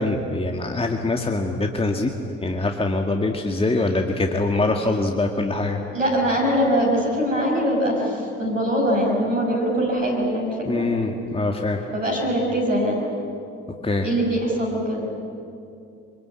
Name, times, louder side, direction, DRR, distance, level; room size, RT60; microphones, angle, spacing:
voice 1, 0.0-2.1 2.4-5.8 10.7-11.8 13.8-14.1, left 2 dB, 15° left, 3 dB, 2.1 m, -23 dB
voice 2, 5.9-10.8 11.9-13.0 14.0-15.0, equal, 90° right, -1 dB, 5.7 m, -22 dB
25.0 x 24.5 x 8.5 m, 2.6 s
figure-of-eight pair, 55°, 37 cm